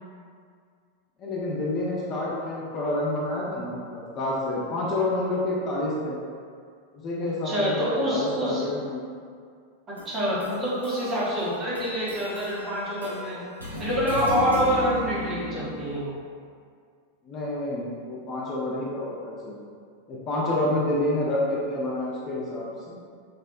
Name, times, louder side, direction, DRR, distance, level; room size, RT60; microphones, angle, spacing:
voice 1, 1.2-6.2 6.9-9.0 17.2-19.5 20.1-23.0, left 1 dB, 30° left, -6 dB, 0.4 m, -28 dB
voice 2, 7.2-8.7 9.9-13.4 13.8-16.1, equal, 20° right, -8 dB, 0.7 m, -26 dB
sound 1, 10.0-16.0, equal, 85° left, 0.5 m, -36 dB
2.7 x 2.0 x 2.3 m, 2.2 s
figure-of-eight pair, 90°, 0 cm